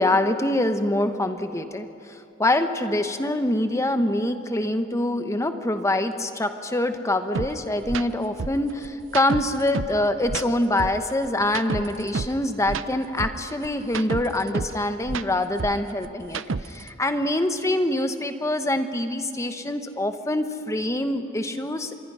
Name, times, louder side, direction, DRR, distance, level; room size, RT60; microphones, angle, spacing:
voice 1, 0.0-21.9, left 1 dB, 15° left, 8 dB, 1.0 m, -25 dB
sound 1, 7.3-7.5 7.8-8.0 8.4-10.0 10.2-12.4 12.6-14.8 15.0-16.9, right 4 dB, 70° right, 0.6 m, -30 dB
26.5 x 21.5 x 5.6 m, 2.5 s
head